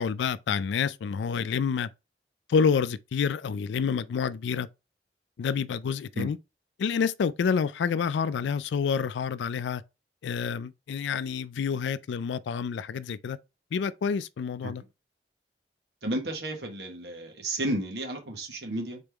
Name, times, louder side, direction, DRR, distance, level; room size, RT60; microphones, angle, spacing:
voice 1, 0.0-1.9 2.5-4.7 5.4-6.4 6.8-9.8 10.2-13.4 13.7-14.8, left 6 dB, 80° left, 0.3 m, -28 dB
voice 2, 16.0-19.0, right 1 dB, 65° right, 1.4 m, -32 dB
4.1 x 3.5 x 3.4 m
head